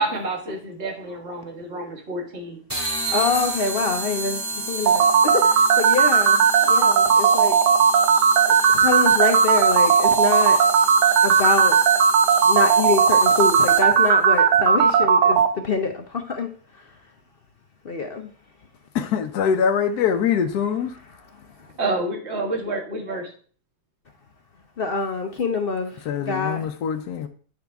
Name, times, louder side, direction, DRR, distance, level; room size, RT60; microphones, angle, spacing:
voice 1, 0.0-2.6 21.8-23.3, right 2 dB, 40° right, 1.7 m, -28 dB
sound 1, 2.7-14.1, right 2 dB, 10° right, 1.6 m, -30 dB
voice 2, 3.1-4.4 4.7-7.7 8.7-10.6 11.2-11.8 12.4-16.5 17.8-18.3 21.6-21.7 24.8-26.7, left 4 dB, 55° left, 0.7 m, -25 dB
sound 2, 4.9-15.5, right 6 dB, 80° right, 1.2 m, -16 dB
voice 3, 18.9-20.9 26.0-27.3, left 7 dB, 75° left, 1.1 m, -23 dB
9.2 x 4.9 x 3.5 m
omnidirectional pair, 1.8 m